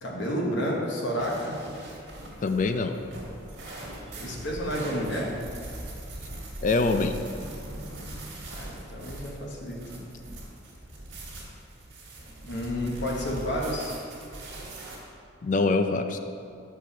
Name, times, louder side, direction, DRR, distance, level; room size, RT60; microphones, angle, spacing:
voice 1, 0.0-1.6 4.2-5.4 8.5-10.0 12.4-14.0, equal, 60° left, -2 dB, 0.9 m, -30 dB
sound 1, 1.2-15.0, right 1 dB, 65° right, 1.7 m, -40 dB
voice 2, 2.4-3.0 6.6-7.2 15.4-16.2, left 3 dB, 40° left, 7 dB, 0.4 m, -24 dB
6.9 x 4.7 x 4.9 m, 2.4 s
head